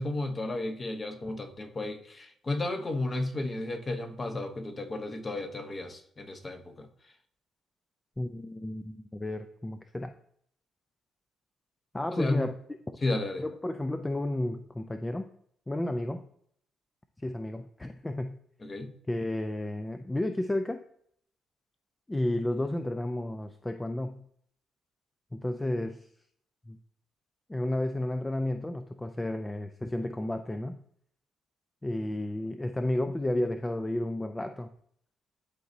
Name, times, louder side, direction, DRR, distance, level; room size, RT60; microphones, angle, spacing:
voice 1, 0.0-6.9 12.1-12.5 13.0-13.4 18.6-18.9, left 2 dB, 30° left, 7 dB, 0.9 m, -33 dB
voice 2, 8.2-10.1 11.9-12.5 13.4-15.3 15.7-16.3 17.2-18.4 19.1-20.8 22.1-24.2 25.3-26.1 26.7-26.8 27.5-30.8 31.8-34.7, left 1 dB, 15° left, 8 dB, 0.4 m, -32 dB
11.5 x 4.0 x 2.7 m, 0.66 s
cardioid pair, 90°, 0 cm